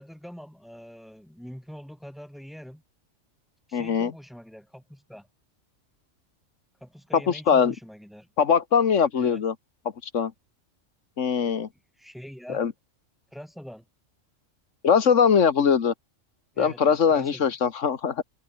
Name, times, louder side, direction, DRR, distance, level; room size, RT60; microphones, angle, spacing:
voice 1, 0.0-2.8 3.7-5.3 6.8-8.3 9.1-9.4 12.0-12.7 13.3-13.8 16.5-17.5, equal, ahead, 5.6 m, -44 dB
voice 2, 3.7-4.1 7.3-7.7 8.4-9.6 10.1-10.3 11.2-11.7 12.5-12.7 14.8-15.9 16.6-18.2, left 7 dB, 75° left, 1.7 m, -21 dB
open air
omnidirectional pair, 1.3 m